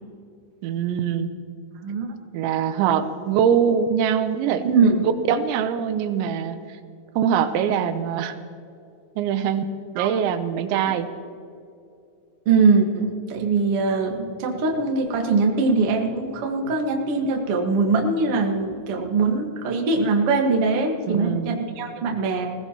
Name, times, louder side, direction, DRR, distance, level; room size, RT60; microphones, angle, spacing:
voice 1, 0.6-1.3 2.3-4.7 5.0-6.6 7.2-8.4 9.2-11.1 21.1-21.6, right 8 dB, 85° right, 10 dB, 3.0 m, -23 dB
voice 2, 1.8-2.2 4.6-5.0 10.0-10.1 10.7-10.8 12.4-22.5, right 4 dB, 60° right, 1 dB, 1.5 m, -22 dB
20.5 x 17.5 x 3.0 m, 2.5 s
omnidirectional pair, 5.2 m